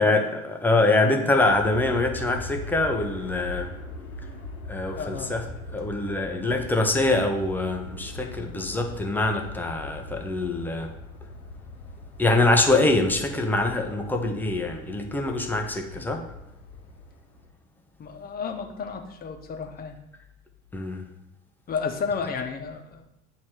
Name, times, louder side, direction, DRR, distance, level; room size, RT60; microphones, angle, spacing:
voice 1, 0.0-3.7 4.7-5.4 5.7-10.9 12.2-16.3 20.7-21.1, left 2 dB, 5° left, 3 dB, 0.4 m, -24 dB
Aircraft, 1.3-17.5, left 2 dB, 85° left, 1.1 m, -40 dB
voice 2, 4.9-5.3 15.9-16.1 18.0-20.0 21.7-23.1, left 5 dB, 20° left, 4 dB, 0.7 m, -32 dB
8.4 x 3.1 x 4.4 m, 0.84 s
figure-of-eight pair, 75°, 42 cm